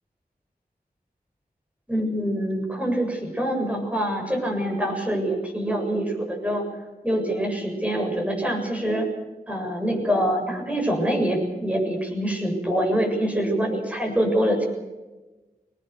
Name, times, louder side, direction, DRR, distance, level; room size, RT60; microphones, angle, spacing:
voice 1, 1.9-6.6 7.0-9.1 9.5-14.7, equal, 10° right, 2 dB, 7.2 m, -25 dB
22.0 x 19.0 x 8.1 m, 1.2 s
wide cardioid pair, 50°, 16 cm